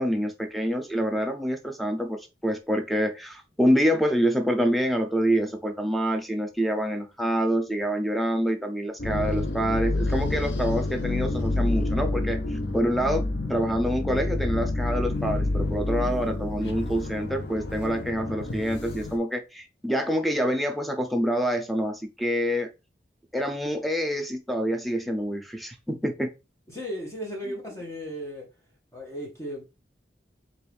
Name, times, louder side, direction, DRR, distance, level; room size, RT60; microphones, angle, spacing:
voice 1, 0.0-13.2 13.5-22.7 23.3-26.3, equal, ahead, 0.5 m, -26 dB
sound 1, 9.0-19.2, left 2 dB, 75° left, 0.7 m, -28 dB
voice 2, 26.7-28.5 28.9-29.6, equal, 15° left, 1.0 m, -35 dB
4.4 x 2.5 x 3.4 m
head